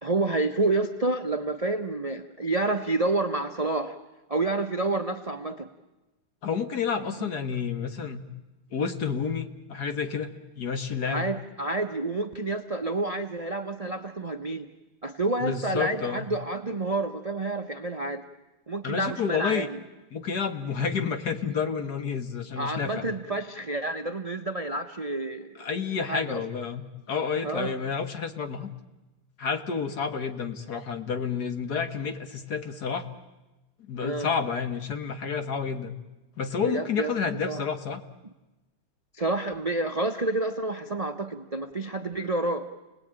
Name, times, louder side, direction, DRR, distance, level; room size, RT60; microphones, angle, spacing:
voice 1, 0.0-4.0 4.3-5.7 7.2-7.3 11.0-14.7 15.0-18.2 18.7-19.8 22.6-25.5 26.1-26.4 27.4-27.7 34.0-34.3 36.6-37.1 37.5-37.6 39.1-42.7, right 2 dB, 30° right, 7 dB, 0.7 m, -29 dB
voice 2, 6.4-8.2 8.7-11.3 15.4-16.3 18.8-19.7 20.1-23.0 25.6-26.8 27.1-28.7 29.4-33.1 33.9-35.9 36.4-38.0, left 6 dB, 55° left, 7 dB, 2.0 m, -30 dB
29.5 x 19.5 x 8.9 m, 1.1 s
omnidirectional pair, 2.1 m